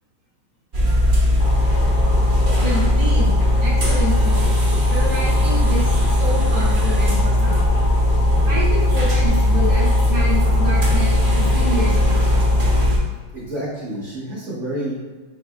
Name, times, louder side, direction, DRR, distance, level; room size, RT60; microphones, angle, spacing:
sound 1, 0.7-13.0, left 1 dB, 80° right, 0.4 m, -17 dB
sound 2, 1.4-12.9, left 2 dB, 70° left, 0.9 m, -31 dB
voice 1, 2.6-4.6 4.9-7.6 8.5-12.2, equal, 20° right, -7 dB, 0.6 m, -28 dB
voice 2, 13.3-15.1, right 1 dB, 55° right, -8 dB, 0.8 m, -29 dB
3.6 x 3.4 x 2.2 m, 1.4 s
omnidirectional pair, 2.1 m